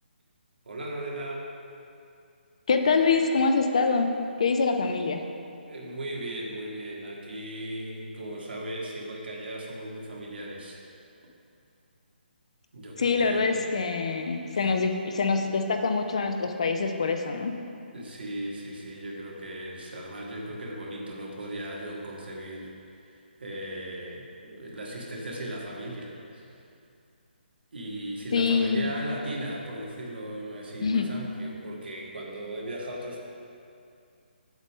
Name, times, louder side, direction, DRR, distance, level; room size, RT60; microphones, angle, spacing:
voice 1, 0.7-1.5 5.7-10.8 12.7-13.6 14.5-14.6 17.9-22.7 23.1-26.5 27.7-33.3, right 1 dB, 70° right, -2 dB, 1.8 m, -37 dB
voice 2, 2.7-4.1 4.4-5.2 13.0-17.5 28.3-28.9 30.8-31.1, left 4 dB, 35° left, 6 dB, 0.5 m, -25 dB
8.0 x 7.7 x 3.6 m, 2.5 s
hypercardioid pair, 175°, 6 cm